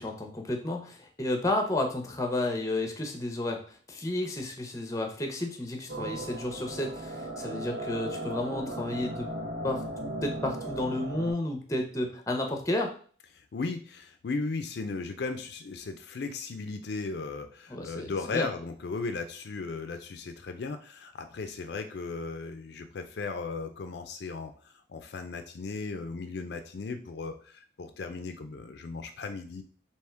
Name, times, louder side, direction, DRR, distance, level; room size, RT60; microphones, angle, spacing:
voice 1, 0.0-9.3 9.6-12.9 17.7-18.5, left 1 dB, 20° left, 3 dB, 0.7 m, -32 dB
sound 1, 5.9-11.3, right 1 dB, 85° right, 1.1 m, -37 dB
voice 2, 13.3-29.6, left 4 dB, 65° left, 7 dB, 0.4 m, -36 dB
3.5 x 2.9 x 4.4 m, 0.43 s
head